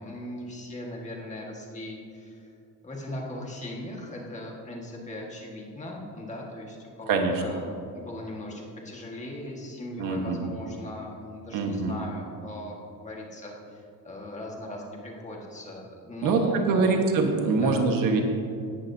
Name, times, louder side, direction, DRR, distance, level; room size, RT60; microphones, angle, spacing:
voice 1, 0.0-2.5 2.8-17.0 17.6-17.9, left 1 dB, 15° left, -1 dB, 1.6 m, -39 dB
voice 2, 7.1-7.4 10.0-10.4 11.5-12.0 16.2-18.2, right 4 dB, 50° right, 3 dB, 1.4 m, -24 dB
17.5 x 11.0 x 2.7 m, 2.5 s
cardioid pair, 175°, 43 cm